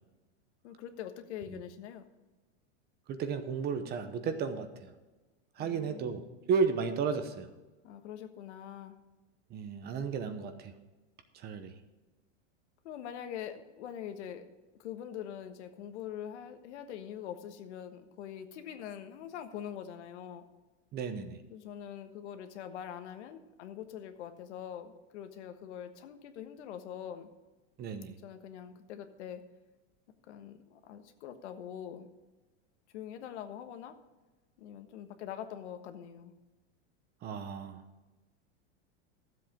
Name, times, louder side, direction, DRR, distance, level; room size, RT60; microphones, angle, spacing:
voice 1, 0.6-2.0 5.6-6.1 7.8-9.0 12.8-14.4 14.8-20.4 21.5-27.3 28.2-29.4 30.3-32.1 32.9-33.9 34.6-36.3, left 9 dB, 70° left, 8 dB, 1.4 m, -43 dB
voice 2, 3.1-4.9 5.6-6.2 6.5-7.5 9.5-10.7 11.3-11.8 20.9-21.4 27.8-28.2 37.2-37.8, right 5 dB, 25° right, 9 dB, 0.9 m, -33 dB
12.5 x 7.8 x 5.1 m, 1.2 s
supercardioid pair, 150°, 35 cm